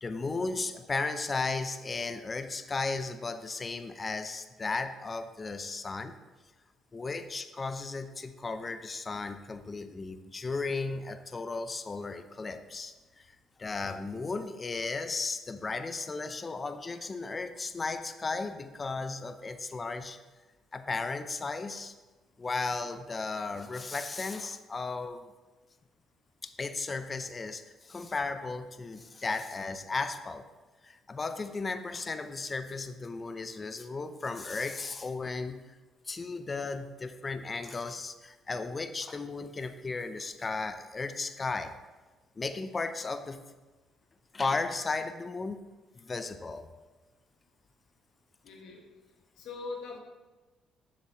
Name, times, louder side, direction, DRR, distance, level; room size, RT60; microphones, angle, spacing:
voice 1, 0.0-6.2 6.9-20.2 20.7-21.9 22.4-25.3 26.4-30.5 30.8-35.6 36.1-41.7 42.4-43.4 44.3-45.6 46.0-46.7, left 3 dB, 30° left, 9 dB, 0.5 m, -35 dB
voice 2, 48.4-48.8 49.4-50.0, left 3 dB, 80° left, 0 dB, 1.5 m, -41 dB
7.2 x 7.0 x 3.0 m, 1.2 s
supercardioid pair, 80°, 0 cm